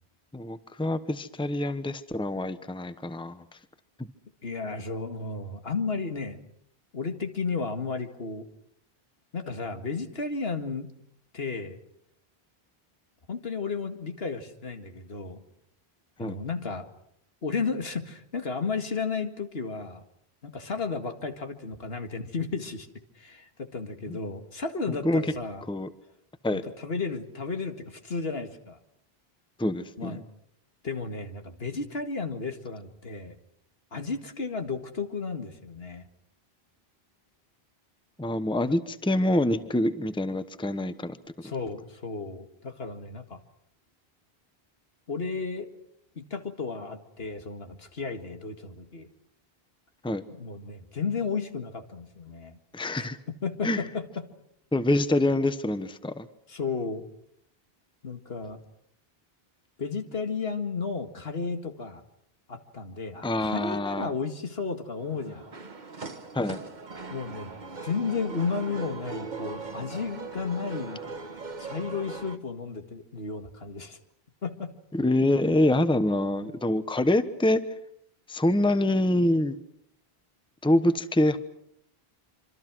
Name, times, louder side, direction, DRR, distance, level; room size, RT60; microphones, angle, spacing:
voice 1, 0.3-3.4 4.0-4.1 16.2-16.4 24.1-24.2 24.9-25.3 25.7-25.9 26.4-26.6 29.6-30.2 38.2-41.2 50.0-50.2 52.7-53.2 53.6-53.8 54.7-56.3 63.2-64.1 66.3-66.6 74.9-77.6 78.3-79.6 80.6-81.4, left 1 dB, 5° left, 12 dB, 1.0 m, -25 dB
voice 2, 4.4-6.4 6.9-8.5 9.3-10.9 11.3-11.8 13.3-15.4 16.2-16.9 17.4-20.0 20.4-22.9 23.2-25.6 26.5-28.8 30.0-30.2 30.8-33.4 33.9-36.0 38.7-38.8 41.4-43.4 45.1-45.7 46.2-49.1 50.3-52.6 53.0-53.1 53.4-54.3 56.5-57.0 58.0-58.6 59.8-62.0 62.5-65.5 67.1-67.5 67.8-71.0 71.6-74.0 74.4-74.7, left 4 dB, 70° left, 7 dB, 2.2 m, -33 dB
sound 1, 65.0-72.4, right 4 dB, 45° right, 1.5 m, -40 dB
26.0 x 26.0 x 6.2 m, 0.73 s
omnidirectional pair, 1.1 m